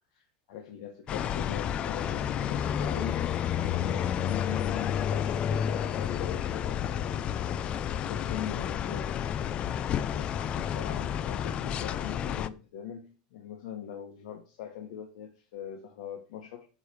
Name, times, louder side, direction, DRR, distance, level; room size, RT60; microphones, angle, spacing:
voice 1, 0.5-3.3 3.6-7.2 8.1-9.2 10.1-16.7, left 9 dB, 65° left, 1.3 m, -41 dB
sound 1, 1.1-12.5, left 9 dB, 25° left, 0.4 m, -30 dB
9.6 x 3.2 x 6.8 m
supercardioid pair, 160°, 4 cm